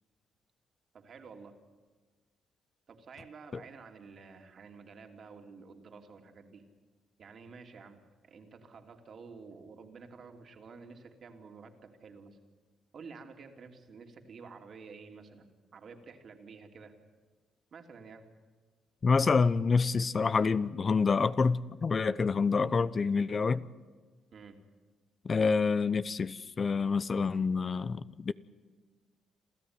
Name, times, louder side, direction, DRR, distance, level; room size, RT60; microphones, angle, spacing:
voice 1, 0.9-1.5 2.9-6.6 7.2-12.4 12.9-16.9 17.7-18.2 24.3-24.6, right 5 dB, 55° right, 2.9 m, -50 dB
voice 2, 19.0-23.6 25.3-28.3, left 5 dB, 40° left, 0.7 m, -27 dB
28.0 x 14.0 x 9.7 m
cardioid pair, 90°, 0 cm